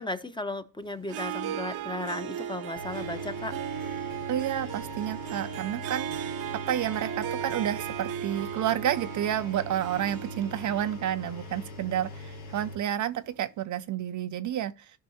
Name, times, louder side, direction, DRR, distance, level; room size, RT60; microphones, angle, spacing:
voice 1, 0.0-3.6, left 2 dB, 10° left, 0.9 m, -35 dB
Harp, 1.0-12.9, right 10 dB, 70° right, 1.0 m, -37 dB
Engine, 2.8-12.8, left 3 dB, 70° left, 1.6 m, -42 dB
voice 2, 4.3-6.4 6.7-14.7, right 11 dB, 50° right, 0.6 m, -30 dB
14.0 x 5.4 x 2.8 m
hypercardioid pair, 60°, 39 cm